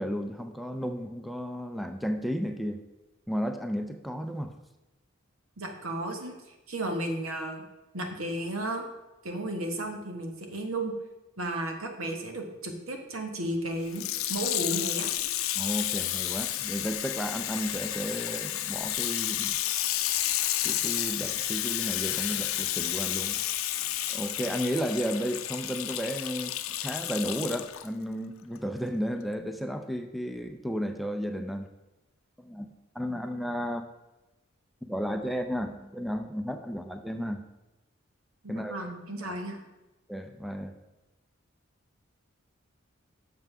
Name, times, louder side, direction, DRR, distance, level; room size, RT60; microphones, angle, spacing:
voice 1, 0.0-2.8 3.3-4.5 15.5-19.6 20.6-23.4 24.1-31.7 32.4-32.7 32.9-33.9 34.8-37.4 38.5-38.9 40.1-40.7, equal, ahead, 7 dB, 0.4 m, -33 dB
voice 2, 5.6-6.3 6.7-7.6 7.9-8.8 9.2-10.9 11.4-14.0 14.3-15.1 38.4-39.6, right 1 dB, 85° right, 4 dB, 1.4 m, -33 dB
Water tap faucet / Sink (filling or washing), 13.9-27.9 28.5-28.6, left 13 dB, 85° left, 0.5 m, -31 dB
6.7 x 5.5 x 6.0 m, 1.0 s
head